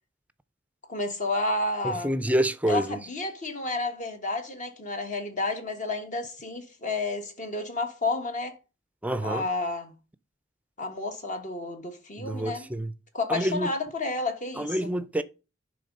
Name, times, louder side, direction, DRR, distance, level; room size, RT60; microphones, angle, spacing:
voice 1, 0.9-2.1 2.7-8.5 9.2-9.9 10.8-12.7 13.1-14.9, left 2 dB, 40° left, 1.5 m, -31 dB
voice 2, 1.8-3.0 9.0-9.4 12.2-12.9 13.3-13.7 14.6-15.2, right 1 dB, 10° right, 0.5 m, -27 dB
10.5 x 3.6 x 5.2 m
head